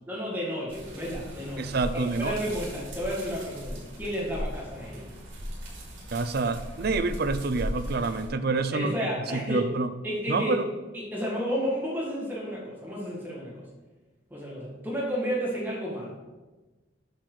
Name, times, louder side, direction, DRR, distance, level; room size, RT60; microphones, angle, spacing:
voice 1, 0.1-5.1 8.7-9.7 10.0-10.6 10.9-13.6 14.3-16.2, equal, 10° right, -4 dB, 1.9 m, -32 dB
sound 1, 0.7-8.3, equal, 85° right, 2.9 m, -38 dB
voice 2, 1.6-2.4 6.1-9.0 9.3-9.9 10.3-10.6, right 3 dB, 50° right, 10 dB, 0.5 m, -27 dB
8.0 x 6.1 x 4.8 m, 1.2 s
head